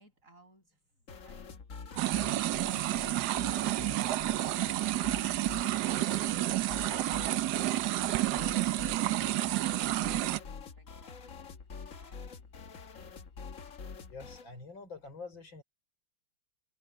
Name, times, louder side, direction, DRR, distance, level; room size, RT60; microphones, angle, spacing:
voice 1, 0.0-12.6, right 2 dB, 40° right, 7.2 m, -62 dB
sound 1, 1.1-14.5, left 5 dB, 45° left, 1.5 m, -46 dB
sound 2, 2.0-10.4, right 15 dB, 70° right, 1.0 m, -30 dB
voice 2, 14.1-15.6, left 4 dB, 85° left, 6.0 m, -46 dB
omnidirectional pair, 2.0 m